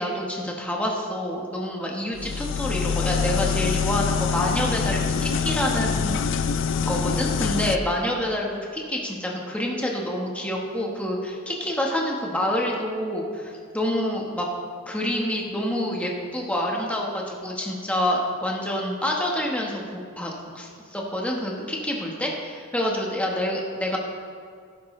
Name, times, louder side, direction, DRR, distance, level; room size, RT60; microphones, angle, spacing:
voice 1, 0.0-6.2 6.8-14.5 14.9-24.0, left 1 dB, 5° left, -2 dB, 1.3 m, -27 dB
sound 1, 2.2-7.8, left 6 dB, 60° left, 0.4 m, -25 dB
15.0 x 11.5 x 3.2 m, 2.2 s
head